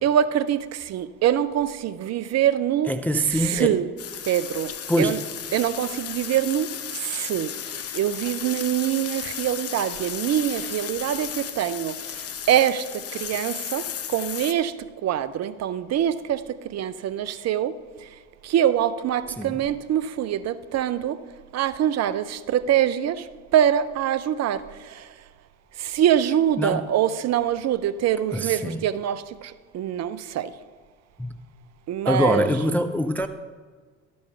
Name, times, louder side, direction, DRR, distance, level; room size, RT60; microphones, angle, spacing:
voice 1, 0.0-2.9 3.3-3.9 4.3-4.7 5.0-5.2 5.5-6.7 6.9-7.5 7.9-14.7 15.0-17.8 18.4-21.2 21.5-23.3 23.5-25.1 25.8-30.5 31.9-32.5, right 10 dB, 40° right, 0.6 m, -24 dB
voice 2, 2.8-3.8 4.9-5.2 19.4-19.6 26.6-26.9 28.3-28.8 31.2-31.3 32.0-33.3, equal, 5° left, 0.4 m, -24 dB
sound 1, 4.0-14.5, left 9 dB, 35° left, 0.9 m, -34 dB
12.5 x 5.4 x 6.7 m
hypercardioid pair, 70°, 41 cm